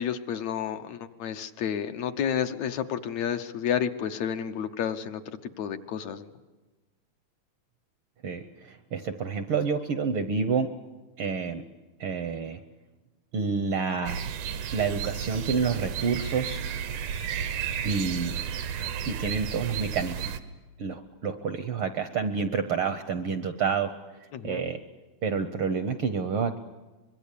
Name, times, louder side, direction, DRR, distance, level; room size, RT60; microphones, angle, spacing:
voice 1, 0.0-5.2 5.6-6.3 24.3-24.7, left 8 dB, 70° left, 7 dB, 2.2 m, -30 dB
voice 2, 8.2-10.7 11.2-11.6 12.0-12.6 13.3-14.2 14.7-16.6 17.8-18.4 18.7-20.2 20.8-23.9 24.4-24.8 25.2-26.6, right 5 dB, 65° right, 8 dB, 1.4 m, -28 dB
sound 1, 14.1-20.4, right 8 dB, 85° right, 2.6 m, -33 dB
24.5 x 22.5 x 8.4 m, 1.2 s
omnidirectional pair, 3.4 m